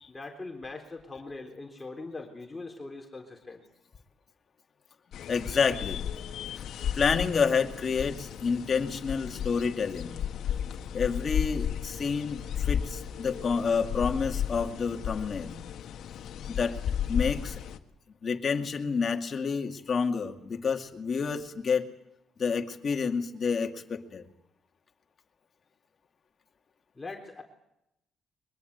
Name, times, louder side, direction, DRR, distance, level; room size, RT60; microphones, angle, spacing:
voice 1, 0.1-3.6 27.0-27.4, left 3 dB, 20° left, 1 dB, 3.6 m, -41 dB
sound 1, 5.1-17.8, left 9 dB, 75° left, 1.6 m, -34 dB
voice 2, 5.3-6.0 7.0-10.1 10.9-15.5 16.6-16.8 17.1-17.6 18.2-21.9 22.4-24.2, left 5 dB, 45° left, 4 dB, 2.4 m, -29 dB
22.5 x 22.0 x 8.1 m, 0.85 s
cardioid pair, 90°, 0 cm